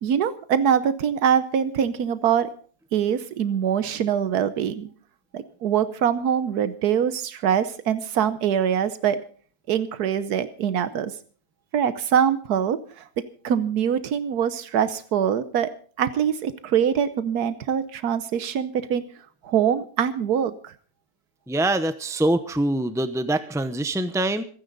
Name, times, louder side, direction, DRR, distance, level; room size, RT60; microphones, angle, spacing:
voice 1, 0.0-2.5 2.9-4.9 5.3-9.2 9.7-11.1 11.7-13.1 13.4-15.7 16.0-19.0 19.4-20.7, right 8 dB, 85° right, 13 dB, 1.4 m, -23 dB
voice 2, 21.5-24.4, right 1 dB, 5° right, 10 dB, 0.4 m, -24 dB
26.0 x 10.0 x 4.0 m, 0.44 s
omnidirectional pair, 1.6 m